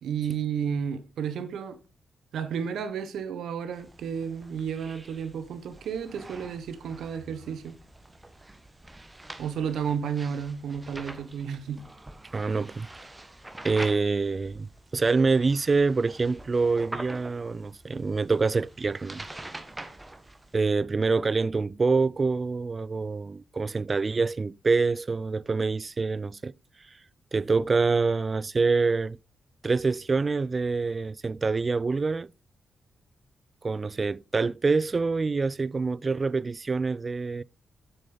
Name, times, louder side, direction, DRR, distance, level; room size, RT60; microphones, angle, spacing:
voice 1, 0.0-1.8 2.3-7.8 9.4-11.8, right 7 dB, 85° right, 1.2 m, -32 dB
sound 1, 3.7-20.7, right 1 dB, 15° right, 1.2 m, -45 dB
voice 2, 12.3-12.9 13.6-14.7 14.9-19.2 20.5-26.5 27.3-29.2 29.6-32.3 33.6-37.4, right 4 dB, 35° right, 0.3 m, -26 dB
7.8 x 6.4 x 3.9 m
cardioid pair, 85°, 0 cm